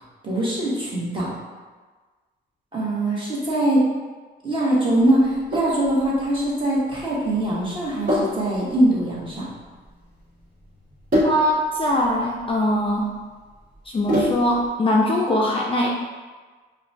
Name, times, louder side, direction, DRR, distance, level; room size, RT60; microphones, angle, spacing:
voice 1, 0.2-1.3 2.7-3.9 4.4-9.5, right 1 dB, 25° right, -6 dB, 1.2 m, -22 dB
Sink (filling or washing), 5.2-14.7, left 1 dB, 45° right, 1.3 m, -28 dB
voice 2, 11.2-13.1 13.9-15.9, equal, 25° left, -2 dB, 0.4 m, -21 dB
4.8 x 2.2 x 2.6 m, 1.4 s
cardioid pair, 90°, 20 cm